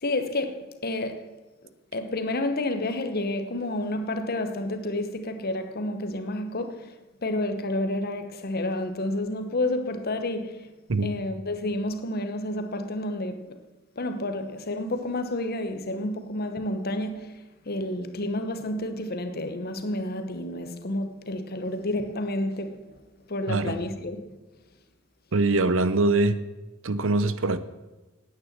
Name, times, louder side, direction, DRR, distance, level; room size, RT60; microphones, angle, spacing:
voice 1, 0.0-1.3 1.9-10.7 11.0-13.6 14.0-22.9 23.3-24.2, left 1 dB, 45° left, 1.0 m, -30 dB
voice 2, 25.3-26.4 26.8-27.6, right 2 dB, 60° right, 0.7 m, -23 dB
9.6 x 9.1 x 7.4 m
head